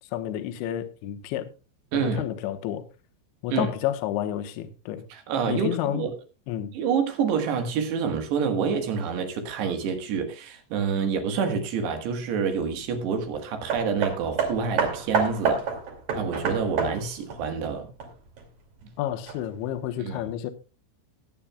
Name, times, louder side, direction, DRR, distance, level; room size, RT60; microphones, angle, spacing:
voice 1, 0.1-1.5 1.9-2.8 3.4-5.0 5.5-6.1 6.5-6.7 19.0-20.5, left 11 dB, 75° left, 3.2 m, -30 dB
voice 2, 1.9-2.2 3.5-3.7 5.1-6.1 6.7-15.7 16.1-17.9 20.0-20.2, right 6 dB, 65° right, 3.3 m, -27 dB
Hammer, 13.7-18.4 19.3-19.4, right 5 dB, 45° right, 3.2 m, -28 dB
22.0 x 8.6 x 2.3 m
omnidirectional pair, 5.8 m